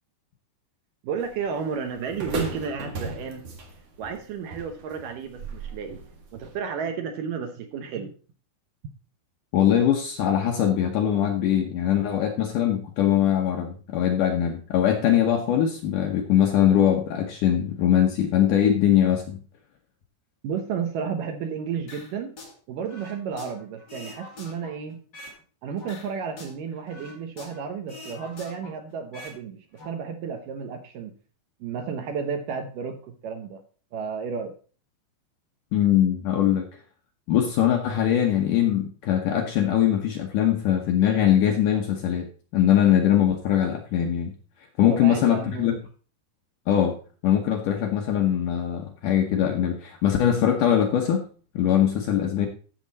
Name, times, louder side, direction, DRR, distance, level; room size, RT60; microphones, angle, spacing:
voice 1, 1.0-3.4 4.0-6.0 6.3-8.1 20.4-22.3 22.7-25.0 25.6-31.1 31.6-33.6 33.9-34.5 44.9-45.8, right 6 dB, 80° right, 5 dB, 1.9 m, -32 dB
sound 1, 1.2-6.6, right 2 dB, 50° right, 2.0 m, -36 dB
voice 2, 9.5-19.4 35.7-36.7 37.3-42.3 42.5-44.3 44.8-45.7 46.7-47.0 47.2-51.3 51.6-52.5, left 10 dB, 80° left, 2 dB, 1.8 m, -22 dB
sound 2, 21.9-22.5 22.9-25.4 25.8-27.6 27.9-29.4 29.6-29.9, left 2 dB, 30° left, 2.4 m, -44 dB
14.0 x 6.6 x 4.1 m, 0.39 s
omnidirectional pair, 5.1 m